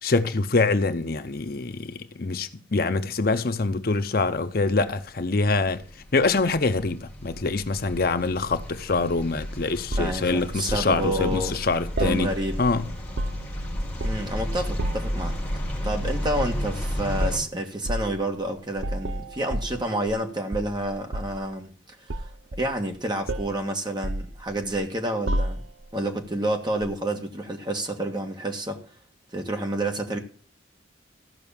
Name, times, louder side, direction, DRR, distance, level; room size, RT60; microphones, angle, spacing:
voice 1, 0.0-5.8 6.1-12.3 12.6-12.9, left 3 dB, 50° left, 0.7 m, -25 dB
sound 1, 4.5-17.4, equal, 5° left, 3.9 m, -33 dB
sound 2, 9.9-10.9 12.0-12.7 13.0-13.6 14.0-14.4 14.8-15.2 16.3-16.6 17.2-17.4 17.9-18.1 18.8-20.2 20.5-21.5 22.1-23.0 23.3-23.6 24.0-24.8 25.3-25.9 26.8-27.0, right 1 dB, 75° right, 0.8 m, -30 dB
voice 2, 10.0-11.6 12.0-12.6 14.0-15.4 15.8-21.7 22.0-22.3 22.6-25.6 25.9-28.8 29.3-30.2, right 1 dB, 25° right, 1.6 m, -29 dB
14.5 x 5.8 x 7.1 m
head